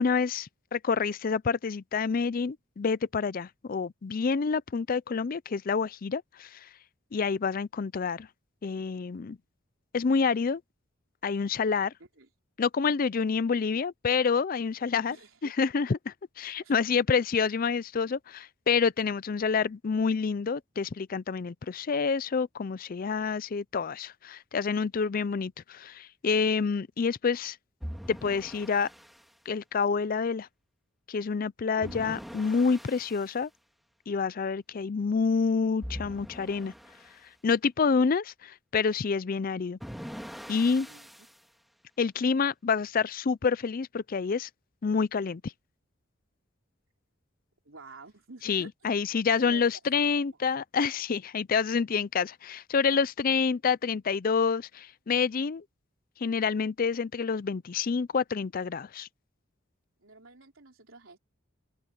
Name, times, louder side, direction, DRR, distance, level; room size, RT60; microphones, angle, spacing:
voice 1, 0.0-6.7 7.1-8.3 8.6-9.4 9.9-10.6 11.2-11.9 12.6-15.2 15.6-27.6 28.1-28.9 29.5-30.5 31.1-33.5 34.1-36.7 37.4-39.8 40.5-40.9 42.0-44.5 44.8-45.5 48.4-55.6 56.2-59.1, left 5 dB, 45° left, 0.4 m, -28 dB
voice 2, 15.0-15.5 16.6-16.7 31.8-32.3 40.8-41.1 47.6-48.7 49.3-49.7 49.9-50.2 60.0-61.2, right 3 dB, 75° right, 3.7 m, -50 dB
sound 1, 27.8-29.2 31.8-33.3 35.8-37.2 39.8-41.4, equal, ahead, 2.3 m, -42 dB
open air
head